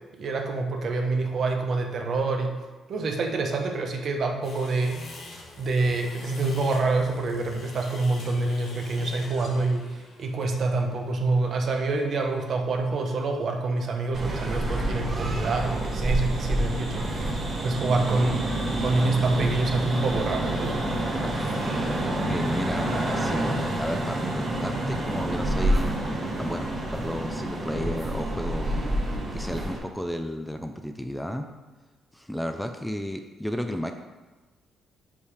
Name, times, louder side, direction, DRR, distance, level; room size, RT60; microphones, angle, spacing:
voice 1, 0.1-2.5 2.9-5.0 5.6-9.9 10.2-18.4 18.8-20.9, right 3 dB, 60° right, 3 dB, 1.0 m, -26 dB
sound 1, 4.4-13.6, left 2 dB, 65° left, 1.4 m, -45 dB
sound 2, 14.1-29.8, right 1 dB, 40° right, 1.5 m, -28 dB
voice 2, 22.2-26.0 26.4-26.7 27.0-28.7 29.3-31.5 32.1-33.9, equal, 5° left, 6 dB, 0.5 m, -33 dB
5.4 x 5.0 x 4.9 m, 1.2 s
cardioid pair, 90°, 0 cm